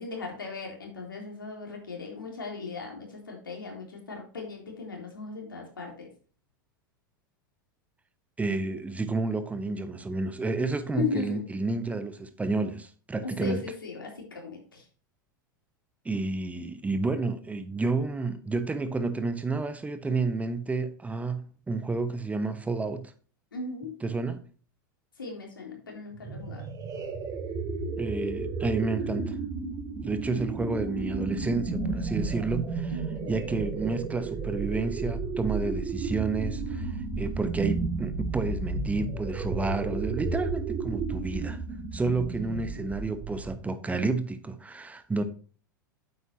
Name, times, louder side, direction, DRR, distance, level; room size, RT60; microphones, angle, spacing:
voice 1, 0.0-6.1 10.9-11.4 13.2-14.8 23.5-24.0 25.2-26.6 32.9-33.4 42.0-42.1 42.5-42.8 45.2-45.3, left 4 dB, 85° left, 3.5 m, -37 dB
voice 2, 8.4-13.6 16.0-23.1 24.0-24.4 28.0-29.3 30.0-33.0 33.3-41.6 41.9-45.2, right 3 dB, 15° right, 1.1 m, -30 dB
sound 1, 26.1-43.7, right 4 dB, 35° right, 2.5 m, -33 dB
9.3 x 8.1 x 2.9 m
hypercardioid pair, 95°, 11 cm